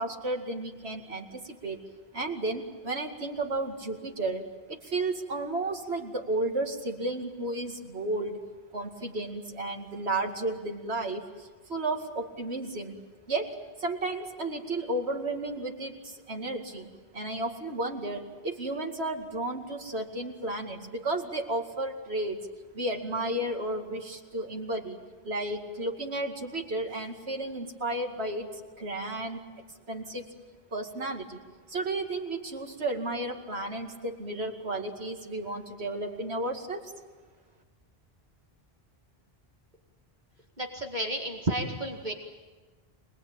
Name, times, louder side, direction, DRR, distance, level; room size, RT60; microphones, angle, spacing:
voice 1, 0.0-1.8 2.1-8.4 8.7-12.9 13.3-16.9 17.1-22.4 22.7-25.0 25.2-29.4 29.9-30.2 30.7-31.4 31.7-36.9, right 2 dB, 85° right, 2 dB, 2.6 m, -33 dB
voice 2, 40.6-42.1, right 1 dB, 45° right, 2 dB, 2.3 m, -31 dB
26.0 x 20.0 x 8.9 m, 1.3 s
omnidirectional pair, 1.1 m